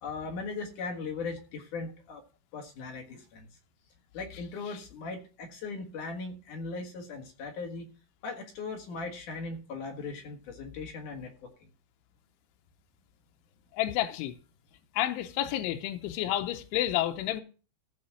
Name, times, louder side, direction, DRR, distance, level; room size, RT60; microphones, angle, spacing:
voice 1, 0.0-2.2 2.5-3.5 4.1-7.9 8.2-11.5, left 4 dB, 60° left, 2.2 m, -38 dB
voice 2, 13.7-14.3 14.9-17.4, left 13 dB, 85° left, 3.1 m, -30 dB
15.5 x 5.1 x 5.9 m
omnidirectional pair, 5.5 m